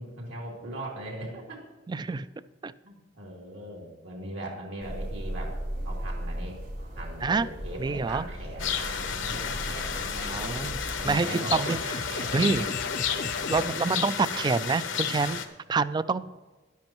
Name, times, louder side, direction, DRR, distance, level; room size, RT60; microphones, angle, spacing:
voice 1, 0.0-1.6 2.8-5.6 5.8-6.6 7.0-10.6 11.0-12.5 13.0-13.8 14.1-14.5 16.2-16.3, right 1 dB, 80° right, -2 dB, 2.7 m, -40 dB
voice 2, 1.9-2.3 2.6-2.7 7.2-7.5 7.8-8.2 10.2-10.8 11.0-11.8 12.3-12.7 13.5-15.4 15.7-16.3, right 4 dB, 25° right, 16 dB, 0.3 m, -27 dB
sound 1, 4.8-11.1, equal, 65° right, 2.8 m, -37 dB
sound 2, 8.3-13.8, left 4 dB, 55° left, 0.6 m, -38 dB
sound 3, 8.6-15.5, left 7 dB, 75° left, 1.0 m, -32 dB
13.0 x 10.5 x 3.0 m, 1.2 s
head